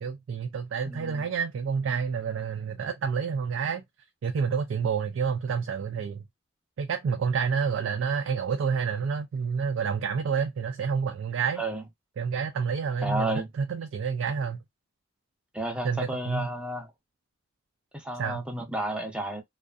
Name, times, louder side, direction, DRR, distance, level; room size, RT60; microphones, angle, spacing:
voice 1, 0.0-3.8 4.2-6.2 6.8-11.6 12.2-14.6 15.8-16.5 18.2-18.5, right 6 dB, 75° right, 0.3 m, -29 dB
voice 2, 0.9-1.2 11.6-11.8 13.0-13.5 15.5-16.9 17.9-19.4, right 1 dB, 5° right, 0.6 m, -32 dB
2.5 x 2.4 x 2.3 m
head